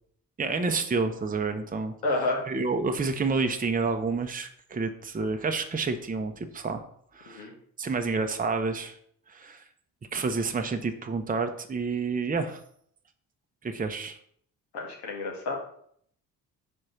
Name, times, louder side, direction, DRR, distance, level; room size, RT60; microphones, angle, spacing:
voice 1, 0.4-1.9 2.5-6.8 7.1-7.5 7.8-9.0 9.3-9.6 10.1-12.6 13.6-14.2, right 4 dB, 20° right, 6 dB, 0.8 m, -29 dB
voice 2, 2.0-2.5 7.3-7.5 14.7-15.5, left 2 dB, 70° left, -1 dB, 1.9 m, -29 dB
4.9 x 4.3 x 5.8 m, 0.65 s
hypercardioid pair, 40°, 44 cm